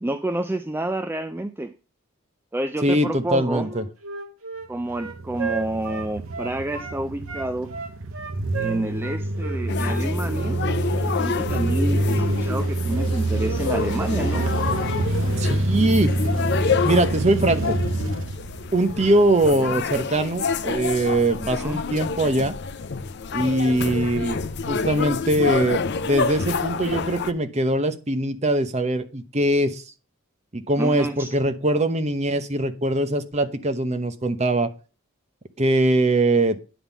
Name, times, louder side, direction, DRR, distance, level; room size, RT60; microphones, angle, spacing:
voice 1, 0.0-1.7 2.5-3.7 4.7-7.7 8.6-10.6 11.0-14.5 21.4-21.8 30.8-31.3, right 1 dB, 10° right, 0.3 m, -29 dB
voice 2, 2.8-3.8 15.4-16.1 16.8-17.8 18.7-22.6 23.3-29.8 30.5-34.7 35.6-36.6, right 1 dB, 30° right, 0.9 m, -22 dB
Wind instrument woodwind instrument, 3.6-7.0 7.3-10.5, right 5 dB, 90° right, 1.6 m, -34 dB
sound 1, 4.8-19.1, right 2 dB, 65° right, 0.8 m, -26 dB
sound 2, 9.7-27.3, left 5 dB, 55° left, 0.6 m, -28 dB
10.0 x 3.7 x 7.1 m
head